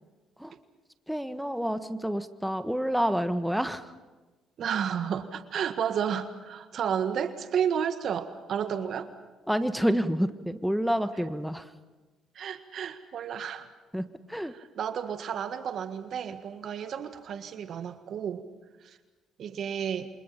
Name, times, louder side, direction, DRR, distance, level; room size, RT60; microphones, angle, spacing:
voice 1, 1.1-3.9 9.5-11.7 13.9-14.5, equal, ahead, 10 dB, 1.4 m, -28 dB
voice 2, 4.6-9.1 12.3-13.7 14.5-18.4 18.8-19.0 19.4-20.1, right 8 dB, 60° right, 10 dB, 1.6 m, -32 dB
28.0 x 25.5 x 5.8 m, 1.3 s
supercardioid pair, 60°, 0 cm